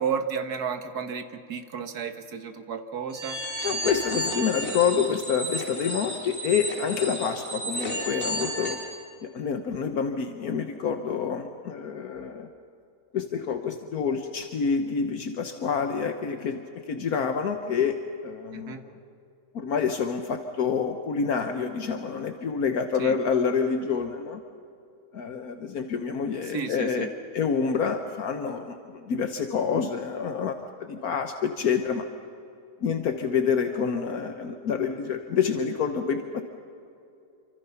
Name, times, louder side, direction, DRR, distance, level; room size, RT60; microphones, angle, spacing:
voice 1, 0.0-3.4 18.5-18.8 23.0-23.2 26.5-27.1, right 6 dB, 80° right, 8 dB, 1.9 m, -32 dB
sound 1, 3.1-8.9, equal, 45° left, 5.0 m, -32 dB
voice 2, 3.6-8.8 9.2-12.5 13.1-16.6 16.9-18.0 18.2-18.7 19.5-24.4 25.1-27.1 27.3-32.1 32.8-36.4, left 6 dB, 70° left, 6 dB, 1.5 m, -27 dB
28.0 x 25.0 x 5.8 m, 2.7 s
omnidirectional pair, 1.6 m